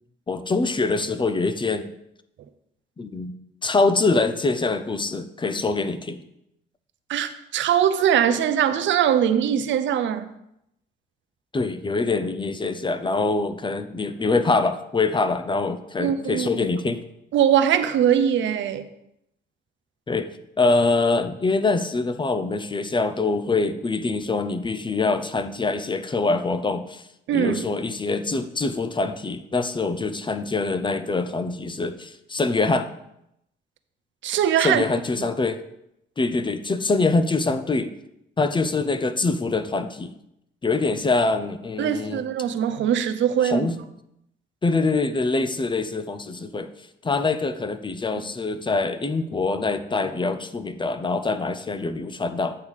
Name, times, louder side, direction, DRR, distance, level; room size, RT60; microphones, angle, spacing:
voice 1, 0.3-1.9 3.0-3.3 3.6-6.2 11.5-17.0 20.1-20.3 20.6-27.0 27.3-32.9 34.6-35.6 36.2-37.9 38.4-40.1 40.6-42.2 43.4-43.8 44.6-46.7 47.0-52.5, left 3 dB, 25° left, 0.6 m, -24 dB
voice 2, 7.1-10.3 16.0-16.6 17.3-18.9 27.3-27.6 34.2-34.8 35.2-35.3 41.8-43.7, right 9 dB, 70° right, 0.6 m, -21 dB
8.6 x 3.6 x 6.3 m
cardioid pair, 90°, 20 cm